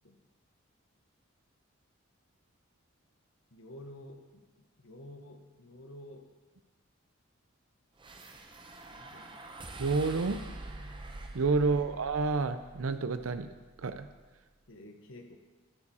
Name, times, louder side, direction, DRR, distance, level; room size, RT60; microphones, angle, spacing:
voice 1, 3.5-4.5 4.8-6.3 8.9-9.4 14.7-15.4, left 1 dB, 70° left, 4 dB, 1.2 m, -50 dB
sound 1, 8.0-14.4, right 2 dB, 25° right, 0.8 m, -46 dB
voice 2, 9.8-10.4 11.3-13.5 13.8-14.1, right 4 dB, 85° right, 11 dB, 0.6 m, -29 dB
13.0 x 7.2 x 4.2 m, 1.3 s
head